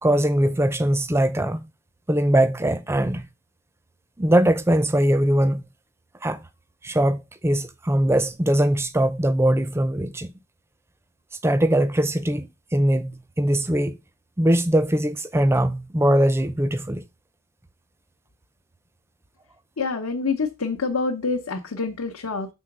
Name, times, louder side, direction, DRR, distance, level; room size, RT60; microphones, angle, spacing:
voice 1, 0.0-1.7 2.1-3.3 4.2-5.6 6.2-6.4 6.8-10.3 11.4-14.0 14.4-17.0, right 1 dB, 10° right, 0.4 m, -21 dB
voice 2, 19.8-22.5, left 4 dB, 85° left, 0.8 m, -26 dB
6.3 x 3.9 x 5.9 m
head